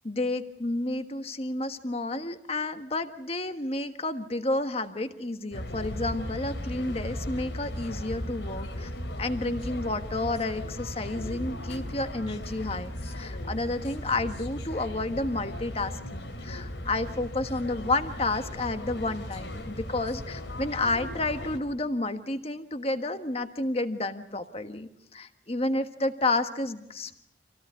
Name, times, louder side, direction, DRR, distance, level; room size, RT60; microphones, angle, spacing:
voice 1, 0.0-8.9 9.2-27.2, left 2 dB, 35° left, 8 dB, 1.4 m, -31 dB
Distant train rattle at a station. Omsk, 5.5-21.6, left 1 dB, 80° left, 3.3 m, -37 dB
27.0 x 17.5 x 8.2 m, 0.85 s
head